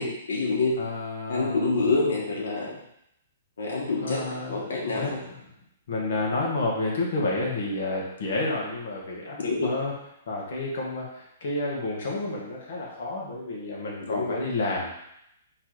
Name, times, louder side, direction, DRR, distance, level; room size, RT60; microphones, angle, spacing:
voice 1, 0.0-0.7 1.3-2.7 3.6-4.2 4.5-5.2 9.4-9.7 14.0-14.3, left 3 dB, 85° left, -3 dB, 1.5 m, -26 dB
voice 2, 0.8-1.9 4.0-5.4 5.9-9.9 10.3-14.9, left 2 dB, 60° left, -3 dB, 1.4 m, -30 dB
4.0 x 3.2 x 3.9 m, 0.79 s
hypercardioid pair, 165°, 0 cm